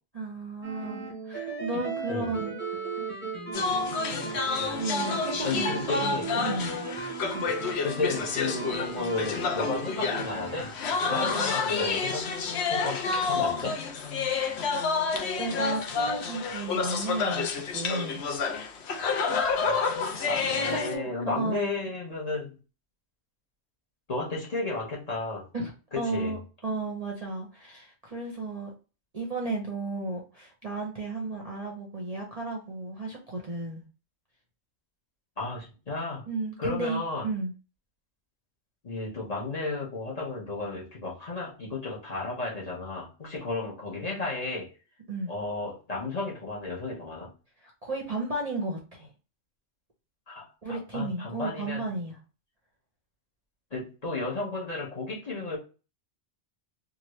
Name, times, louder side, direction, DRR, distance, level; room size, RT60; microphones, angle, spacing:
voice 1, 0.1-2.6 4.7-6.7 7.3-7.5 11.1-11.5 14.6-14.7 15.4-18.2 20.5-21.1 21.3-21.8 25.5-28.7 29.1-33.8 36.3-37.5 45.1-45.3 47.6-49.1 50.6-52.2, right 2 dB, 40° right, -1 dB, 0.6 m, -34 dB
sound 1, 0.6-10.7, right 4 dB, 10° left, 0.8 m, -37 dB
sound 2, 3.5-20.9, left 4 dB, 70° left, 0.8 m, -29 dB
voice 2, 5.4-6.3 7.8-10.7 11.1-12.3 12.7-13.8 19.5-22.5 24.1-25.5 25.9-26.4 35.4-36.2 36.6-37.3 38.8-44.7 45.3-47.3 50.3-51.8 53.7-55.6, left 3 dB, 35° left, -4 dB, 1.0 m, -33 dB
3.0 x 2.5 x 3.0 m, 0.34 s
omnidirectional pair, 1.2 m